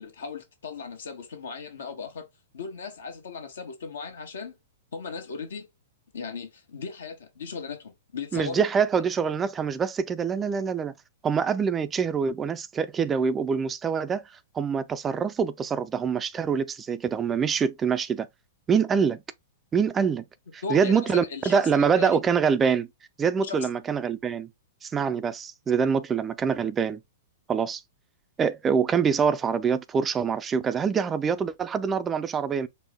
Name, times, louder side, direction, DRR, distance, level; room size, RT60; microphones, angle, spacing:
voice 1, 0.0-2.3 2.5-4.5 4.9-5.7 6.1-8.6 20.6-22.2 23.4-23.6, left 5 dB, 80° left, 1.2 m, -37 dB
voice 2, 8.3-10.9 11.2-14.2 14.5-18.3 18.7-19.2 19.7-20.2 20.5-22.9 23.2-24.5 24.8-27.0 27.5-27.8 28.4-32.7, right 6 dB, 20° right, 0.4 m, -25 dB
4.5 x 2.1 x 3.5 m
hypercardioid pair, 120°, 0 cm